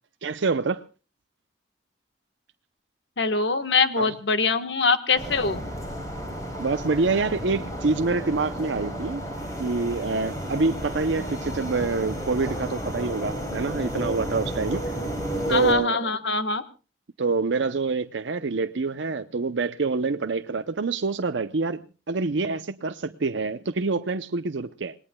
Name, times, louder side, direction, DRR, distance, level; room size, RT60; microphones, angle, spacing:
voice 1, 0.2-0.8 4.0-4.1 6.6-9.3 9.6-14.9 15.5-16.1 17.2-25.0, right 4 dB, 75° right, 0.7 m, -26 dB
voice 2, 3.2-5.7 15.5-16.6, left 4 dB, 70° left, 1.4 m, -23 dB
sound 1, 5.2-15.7, equal, 20° left, 4.9 m, -32 dB
27.0 x 19.5 x 2.3 m
head